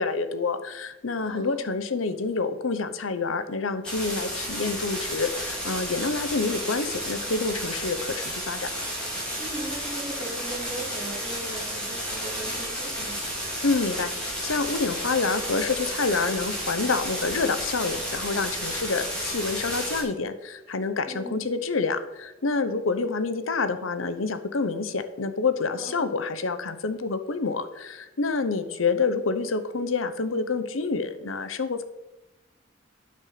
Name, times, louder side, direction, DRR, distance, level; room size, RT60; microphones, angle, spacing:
voice 1, 0.0-8.7 13.6-31.8, left 4 dB, 85° left, 11 dB, 0.8 m, -28 dB
voice 2, 1.2-1.6 9.4-13.2 21.1-21.5 25.8-26.1, right 2 dB, 30° right, -7 dB, 3.4 m, -38 dB
sound 1, 3.8-20.0, equal, 5° left, 3.0 m, -32 dB
9.5 x 6.7 x 5.7 m, 1.0 s
head